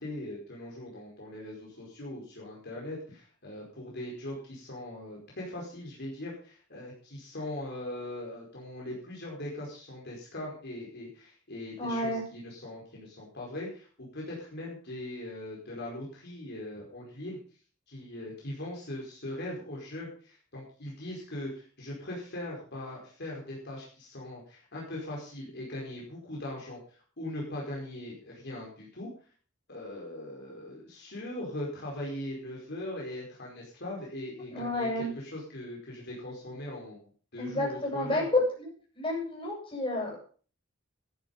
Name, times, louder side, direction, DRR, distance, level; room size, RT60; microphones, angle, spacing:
voice 1, 0.0-17.4 17.9-29.1 29.7-37.0 37.3-38.3, left 1 dB, 55° left, -3 dB, 5.0 m, -40 dB
voice 2, 11.8-12.2 34.5-35.1 37.4-38.7 39.0-40.2, left 2 dB, 25° left, -2 dB, 7.7 m, -30 dB
14.5 x 10.5 x 5.4 m, 0.41 s
head